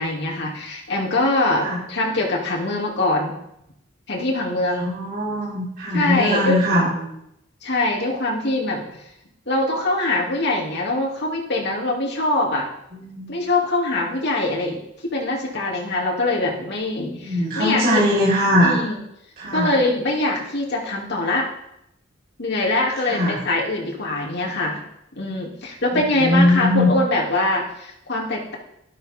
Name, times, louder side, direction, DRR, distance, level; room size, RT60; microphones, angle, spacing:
voice 1, 0.0-3.4 4.1-4.9 5.9-6.6 7.6-8.8 9.5-12.7 13.3-14.8 15.1-18.0 18.6-19.0 19.5-21.5 22.4-24.8 25.1-28.5, left 2 dB, 60° left, -2 dB, 2.9 m, -23 dB
voice 2, 4.8-7.1 12.9-13.3 17.2-18.8 19.4-19.7 23.0-23.4 26.2-26.9, left 1 dB, 50° right, -10 dB, 4.2 m, -20 dB
12.5 x 12.5 x 3.7 m, 0.80 s
head